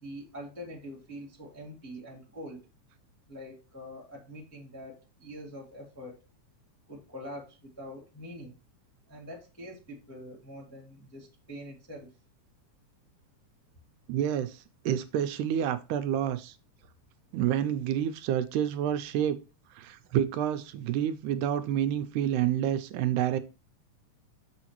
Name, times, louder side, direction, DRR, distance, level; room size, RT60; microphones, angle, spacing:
voice 1, 0.0-2.7 3.3-6.2 6.9-8.5 9.1-12.1, equal, 10° left, 1.0 m, -44 dB
voice 2, 14.1-16.5 17.3-19.4 19.7-23.4, right 10 dB, 80° right, 2.0 m, -28 dB
7.2 x 6.3 x 3.0 m
omnidirectional pair, 3.7 m